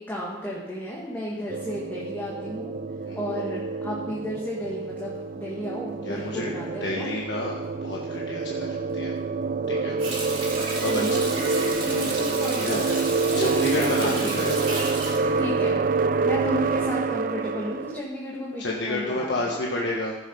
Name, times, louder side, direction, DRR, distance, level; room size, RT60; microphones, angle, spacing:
voice 1, 0.0-2.7 3.2-7.1 10.8-14.4 15.4-15.8 16.2-19.5, equal, 10° left, -5 dB, 1.8 m, -33 dB
sound 1, 1.5-18.0, right 4 dB, 50° right, 0.4 m, -27 dB
voice 2, 6.0-6.5 6.8-9.1 9.7-10.0 10.2-11.2 12.5-12.8 13.3-14.6 18.6-20.2, left 2 dB, 75° left, -2 dB, 1.4 m, -30 dB
Water tap faucet, 10.0-16.4 16.8-16.9, right 2 dB, 30° right, 2.9 m, -33 dB
15.0 x 7.1 x 5.5 m, 1.1 s
head